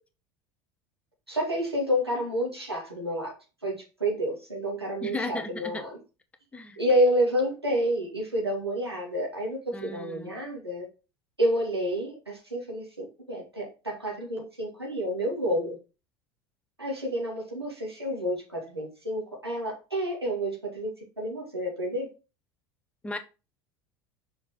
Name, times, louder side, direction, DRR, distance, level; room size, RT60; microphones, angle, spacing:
voice 1, 1.3-3.3 3.6-6.0 6.8-10.9 11.4-15.8 16.8-22.1, equal, 85° right, 2.3 m, -29 dB
voice 2, 5.0-5.8 6.5-6.8 9.7-10.3 23.0-23.2, left 2 dB, 10° left, 0.9 m, -35 dB
6.0 x 5.0 x 3.7 m
figure-of-eight pair, 75°, 13 cm